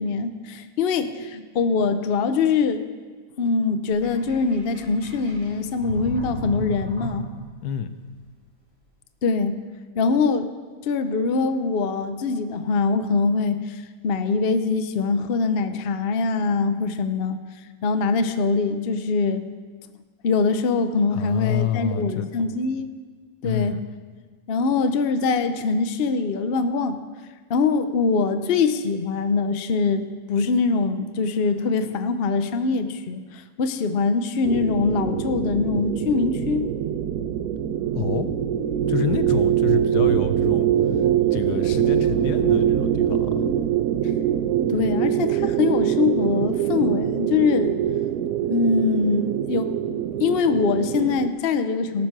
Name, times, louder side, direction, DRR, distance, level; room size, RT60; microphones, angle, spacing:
voice 1, 0.0-2.8 3.4-7.3 9.2-9.6 10.0-10.5 10.8-17.4 17.8-19.4 20.2-22.9 23.4-23.8 24.5-27.0 27.5-36.7 44.7-47.7 48.5-49.7 50.2-52.1, left 4 dB, 50° left, 9 dB, 0.7 m, -23 dB
Sink (filling or washing), 3.9-7.7, equal, 20° right, 4.2 m, -35 dB
voice 2, 7.6-7.9 21.1-22.3 23.4-23.8 37.9-38.3 38.9-40.7 41.3-43.5, left 8 dB, 80° left, 11 dB, 1.3 m, -28 dB
sound 1, 34.4-51.3, right 10 dB, 75° right, 1.0 m, -23 dB
17.5 x 7.4 x 6.0 m, 1.5 s
omnidirectional pair, 1.7 m